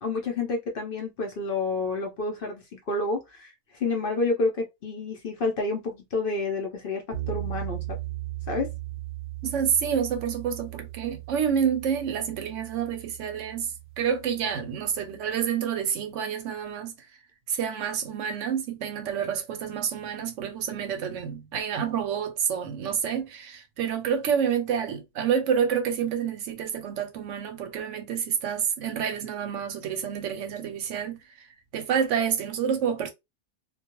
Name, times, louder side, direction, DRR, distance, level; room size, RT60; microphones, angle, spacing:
voice 1, 0.0-8.0 8.5-8.7, left 3 dB, 55° left, 0.7 m, -29 dB
sound 1, 7.1-15.3, right 16 dB, 45° right, 0.6 m, -38 dB
voice 2, 9.4-13.7 14.0-16.9 17.5-31.5 31.7-33.1, right 7 dB, 75° right, 0.9 m, -28 dB
2.3 x 2.2 x 2.9 m
omnidirectional pair, 1.3 m